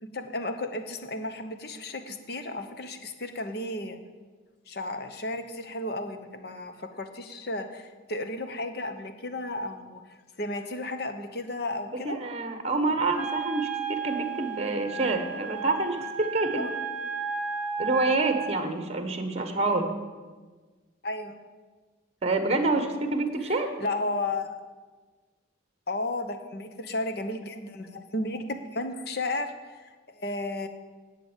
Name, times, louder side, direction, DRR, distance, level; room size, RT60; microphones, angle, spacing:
voice 1, 0.0-4.0 4.7-12.2 16.6-16.7 21.0-21.4 23.4-24.6 25.9-30.7, left 2 dB, 55° left, 8 dB, 1.0 m, -34 dB
voice 2, 12.0-16.6 17.8-19.9 22.2-23.7, right 3 dB, 35° right, 7 dB, 1.1 m, -27 dB
Wind instrument woodwind instrument, 13.1-18.5, right 6 dB, 10° right, 1.9 m, -33 dB
11.0 x 7.9 x 7.3 m, 1.4 s
head